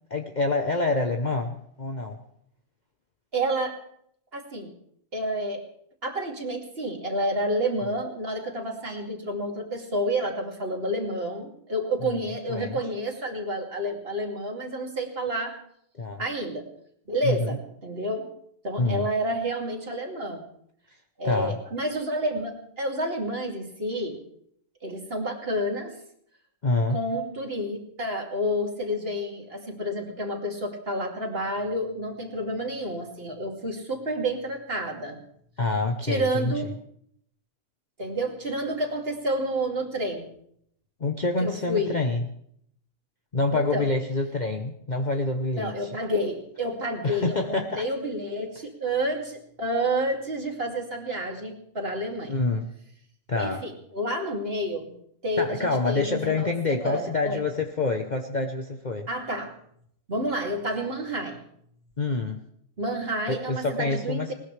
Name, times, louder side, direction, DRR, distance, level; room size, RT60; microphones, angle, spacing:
voice 1, 0.1-2.2 12.5-12.8 16.0-16.2 17.2-17.6 18.8-19.1 21.2-21.6 26.6-27.0 35.6-36.5 41.0-42.2 43.3-46.0 47.0-47.8 52.3-52.7 53.3-53.6 55.4-59.1 62.0-62.4 63.3-64.3, left 3 dB, 35° left, 3 dB, 1.0 m, -27 dB
voice 2, 3.3-3.8 4.3-4.7 5.1-5.6 6.0-15.5 16.2-16.6 17.1-18.3 18.6-20.4 21.2-24.2 24.8-25.9 26.9-35.2 36.0-36.7 38.0-40.3 41.4-42.0 43.5-43.9 45.5-52.4 53.3-54.9 55.2-57.4 59.1-59.5 60.1-61.4 62.8-64.3, right 1 dB, 45° right, 1 dB, 2.9 m, -29 dB
20.0 x 19.5 x 3.4 m, 0.69 s
omnidirectional pair, 1.4 m